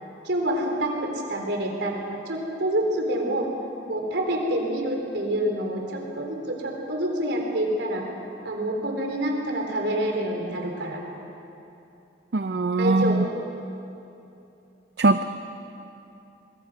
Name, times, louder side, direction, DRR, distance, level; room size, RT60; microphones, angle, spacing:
voice 1, 0.2-1.9 2.3-3.5 3.9-8.0 8.4-11.0 12.8-13.3, right 1 dB, 80° right, 1 dB, 3.8 m, -27 dB
voice 2, 12.3-13.3 15.0-15.2, right 3 dB, 65° right, 9 dB, 0.6 m, -21 dB
25.0 x 21.0 x 6.3 m, 2.9 s
head